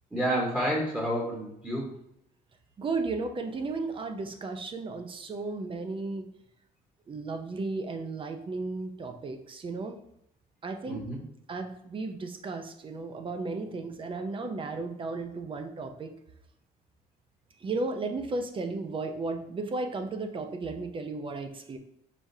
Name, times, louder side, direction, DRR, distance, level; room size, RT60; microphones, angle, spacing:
voice 1, 0.1-1.9 10.9-11.2, equal, 10° right, -4 dB, 1.2 m, -29 dB
voice 2, 2.8-6.3 7.1-10.0 10.6-11.1 11.5-16.1 17.6-21.8, right 3 dB, 30° right, 5 dB, 0.6 m, -34 dB
5.0 x 3.5 x 2.7 m, 0.74 s
cardioid pair, 110°, 17 cm